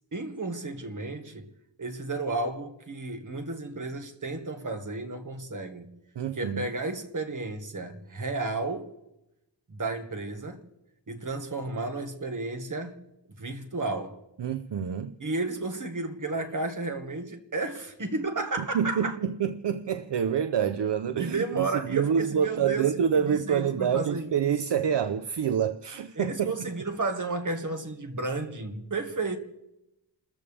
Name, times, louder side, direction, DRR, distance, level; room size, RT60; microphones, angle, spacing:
voice 1, 0.1-1.5 1.8-6.0 6.4-8.9 9.7-10.6 11.1-13.1 13.4-14.2 15.2-19.2 21.2-22.9 23.3-24.5 26.2-29.4, right 3 dB, 45° right, 1.8 m, -32 dB
voice 2, 6.2-6.7 14.4-15.1 18.6-26.5, right 8 dB, 70° right, 0.7 m, -27 dB
29.5 x 14.0 x 3.4 m
wide cardioid pair, 120°, 44 cm